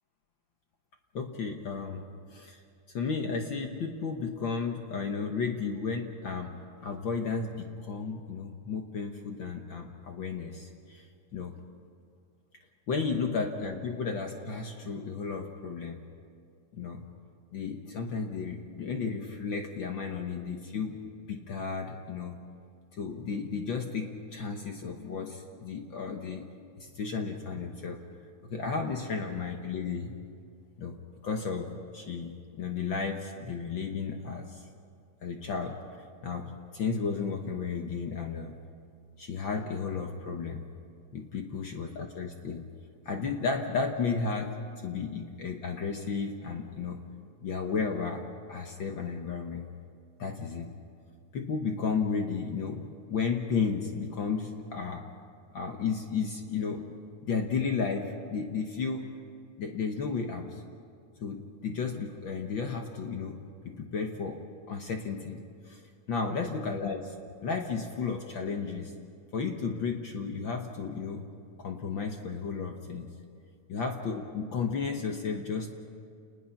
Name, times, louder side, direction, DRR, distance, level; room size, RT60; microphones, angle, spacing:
voice 1, 1.1-2.6 2.9-6.6 6.8-11.1 11.3-11.5 12.9-16.0 16.7-17.1 17.5-21.0 21.3-22.4 22.9-26.5 26.8-30.1 30.8-34.6 35.2-35.8 36.2-38.6 39.2-40.6 41.1-42.7 43.0-44.5 44.8-47.0 47.4-48.2 48.5-49.7 50.2-50.7 51.3-55.0 55.5-56.9 57.2-59.1 59.6-60.6 61.2-64.4 64.7-65.8 66.1-68.9 69.3-71.3 71.6-73.1 73.7-75.7, left 5 dB, 55° left, 3 dB, 1.4 m, -33 dB
29.0 x 20.5 x 5.9 m, 2.3 s
omnidirectional pair, 3.5 m